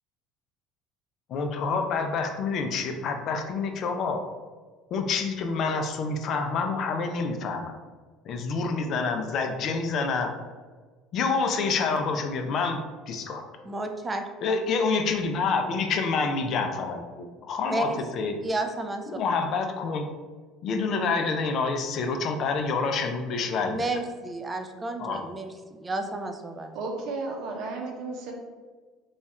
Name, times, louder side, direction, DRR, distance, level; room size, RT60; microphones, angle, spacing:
voice 1, 1.3-4.2 4.9-7.7 8.2-10.3 11.1-13.4 14.4-18.4 19.1-20.1 20.6-23.8 25.0-25.2, left 4 dB, 55° left, 5 dB, 0.5 m, -27 dB
voice 2, 13.6-14.2 17.7-18.0 18.4-19.1 23.7-26.7, right 2 dB, 20° right, 5 dB, 0.4 m, -31 dB
voice 3, 26.7-28.3, right 3 dB, 65° right, 1 dB, 0.8 m, -33 dB
3.2 x 2.3 x 4.2 m, 1.4 s
supercardioid pair, 95°, 0 cm